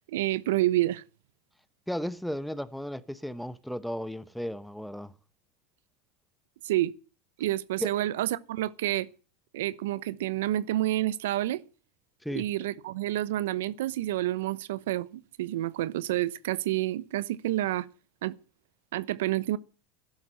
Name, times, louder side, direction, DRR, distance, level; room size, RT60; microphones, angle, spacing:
voice 1, 0.1-1.0 6.6-6.9 7.4-9.1 9.5-11.6 12.3-17.9 18.2-18.3 18.9-19.6, right 15 dB, 80° right, 0.8 m, -29 dB
voice 2, 1.9-5.1 7.8-7.9 12.2-12.4, equal, ahead, 0.9 m, -34 dB
11.5 x 11.5 x 7.6 m
hypercardioid pair, 105°, 0 cm